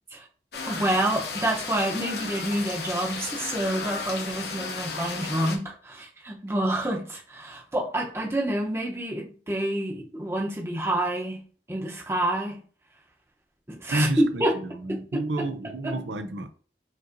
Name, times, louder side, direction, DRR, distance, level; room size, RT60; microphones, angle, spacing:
sound 1, 0.5-5.6, left 4 dB, 70° left, 0.8 m, -34 dB
voice 1, 0.7-12.6 13.7-14.5 15.4-15.5 15.8-16.0, right 1 dB, 15° right, 0.7 m, -28 dB
voice 2, 13.9-16.5, right 1 dB, 90° right, 0.5 m, -30 dB
5.2 x 2.7 x 2.6 m
head